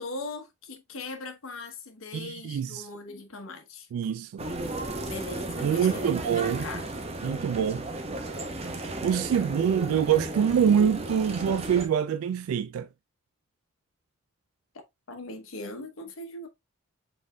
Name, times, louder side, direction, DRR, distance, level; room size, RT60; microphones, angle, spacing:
voice 1, 0.0-3.9 5.1-6.1 6.4-6.9 14.7-16.5, left 2 dB, 75° left, 0.9 m, -40 dB
voice 2, 2.1-2.9 3.9-4.4 5.6-6.6 7.2-7.9 9.0-12.9, right 8 dB, 85° right, 0.3 m, -25 dB
sound 1, 4.4-11.9, right 2 dB, 30° right, 0.7 m, -34 dB
5.3 x 4.0 x 2.2 m
head